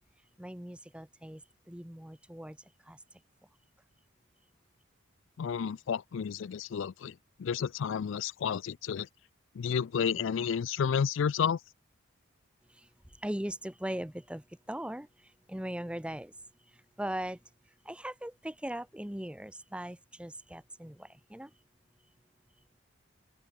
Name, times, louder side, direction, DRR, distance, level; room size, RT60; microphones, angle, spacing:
voice 1, 0.4-1.4 1.7-2.6 2.8-3.0 12.7-16.4 16.7-17.4 17.8-21.5, right 1 dB, 5° right, 0.7 m, -40 dB
voice 2, 5.4-9.1 9.5-11.6, left 7 dB, 65° left, 0.3 m, -31 dB
open air
head